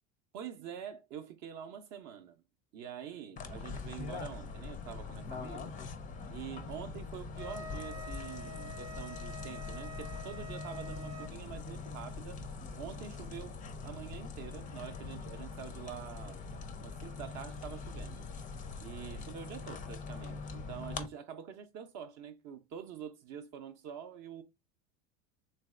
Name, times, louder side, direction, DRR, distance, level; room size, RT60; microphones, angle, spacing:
voice 1, 0.3-2.4 2.7-5.7 6.3-12.4 12.7-16.4 16.8-18.2 18.8-24.4, right 8 dB, 45° right, 0.5 m, -46 dB
sound 1, 3.4-21.1, left 4 dB, 20° left, 0.4 m, -43 dB
Wind instrument woodwind instrument, 7.4-11.3, left 1 dB, 90° right, 0.9 m, -47 dB
3.2 x 2.5 x 2.4 m
hypercardioid pair, 85°, 37 cm